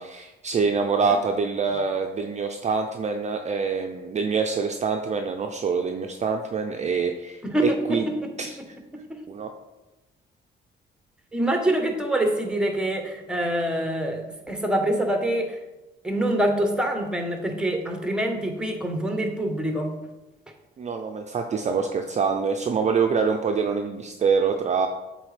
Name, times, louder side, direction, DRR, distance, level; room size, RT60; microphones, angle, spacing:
voice 1, 0.0-7.4 7.9-8.0 8.4-8.5 9.3-9.5 20.8-24.9, right 5 dB, 35° right, 4 dB, 0.4 m, -25 dB
voice 2, 7.4-8.3 8.6-8.7 8.9-9.2 11.3-15.6 16.0-19.9, right 1 dB, 5° right, 4 dB, 1.0 m, -25 dB
7.8 x 3.9 x 3.3 m, 1.1 s
cardioid pair, 90°, 20 cm